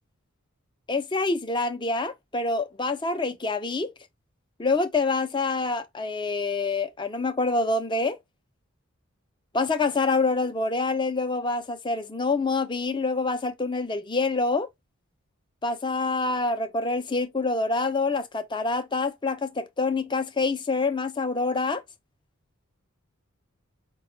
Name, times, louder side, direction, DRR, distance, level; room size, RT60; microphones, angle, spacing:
voice 1, 0.9-3.9 4.6-8.2 9.5-14.7 15.6-21.8, left 3 dB, 20° left, 0.5 m, -26 dB
5.0 x 2.3 x 3.1 m
head